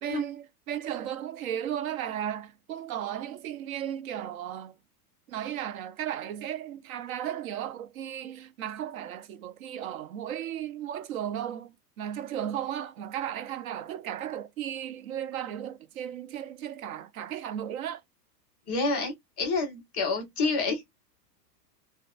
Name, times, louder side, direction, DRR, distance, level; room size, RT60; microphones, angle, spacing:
voice 1, 0.0-4.8 5.3-18.0, right 10 dB, 60° right, 0.6 m, -35 dB
voice 2, 18.7-20.8, left 3 dB, 5° right, 0.4 m, -28 dB
2.4 x 2.3 x 2.4 m
supercardioid pair, 165°, 49 cm